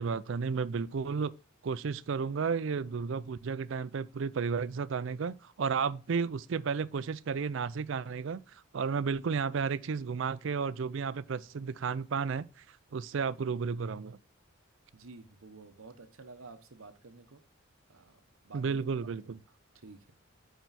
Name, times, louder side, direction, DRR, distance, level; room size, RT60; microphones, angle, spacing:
voice 1, 0.0-1.3 1.6-12.5 12.9-14.2 18.5-19.4, right 5 dB, 60° right, 0.4 m, -33 dB
voice 2, 14.9-17.4 17.9-19.3 19.7-20.1, right 3 dB, 80° right, 0.9 m, -52 dB
9.0 x 4.6 x 4.1 m
head